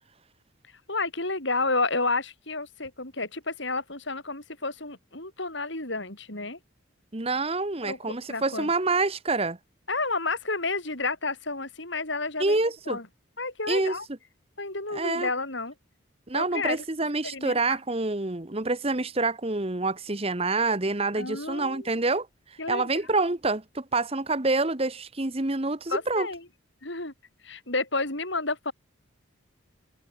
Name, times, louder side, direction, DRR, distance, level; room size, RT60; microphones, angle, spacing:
voice 1, 0.9-6.6 7.8-8.7 9.9-12.6 12.9-13.1 13.4-14.1 14.6-15.7 16.3-16.8 17.3-17.8 21.2-21.9 22.6-22.9 25.9-26.5 26.8-27.1 27.4-28.7, left 3 dB, 60° left, 6.4 m, -31 dB
voice 2, 7.1-9.6 12.4-13.0 13.7-14.0 14.9-15.3 16.3-22.3 22.7-26.3, right 3 dB, 30° right, 1.2 m, -27 dB
head